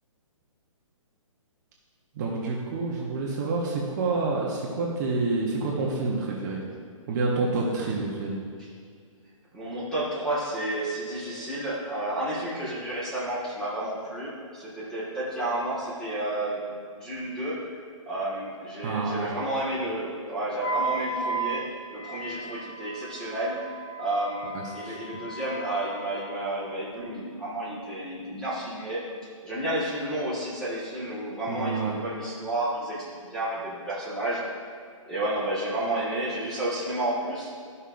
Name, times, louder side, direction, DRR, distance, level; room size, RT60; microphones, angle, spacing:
voice 1, 2.1-6.6 7.1-8.4 18.8-19.4 24.5-24.9 31.5-31.9, right 3 dB, 30° right, -3 dB, 0.9 m, -28 dB
voice 2, 9.5-16.6 16.9-17.6 18.1-21.6 21.9-23.6 24.0-29.0 29.4-34.4 35.1-37.5, right 1 dB, 5° left, -9 dB, 1.4 m, -31 dB
Wind instrument woodwind instrument, 20.6-26.7, right 3 dB, 35° left, 0.5 m, -35 dB
13.0 x 5.5 x 2.5 m, 2.1 s
hypercardioid pair, 160°, 17 cm